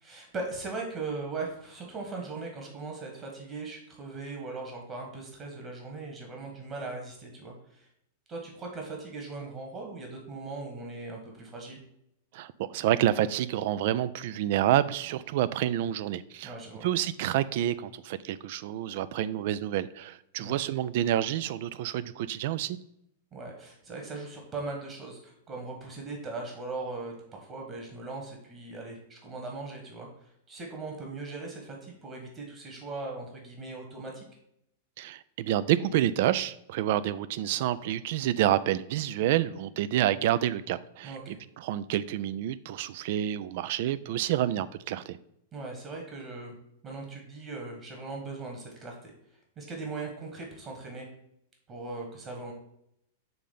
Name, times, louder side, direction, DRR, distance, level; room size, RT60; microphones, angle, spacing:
voice 1, 0.0-7.9 8.3-11.8 16.4-16.9 20.4-20.6 23.3-34.3 41.0-41.4 45.5-46.5 46.8-49.1 49.6-51.1 51.7-52.5, right 3 dB, 35° right, 1.5 m, -39 dB
voice 2, 12.3-16.6 16.8-22.8 35.0-45.2, right 12 dB, 55° right, 0.3 m, -28 dB
5.9 x 3.6 x 5.3 m
figure-of-eight pair, 100°, 0 cm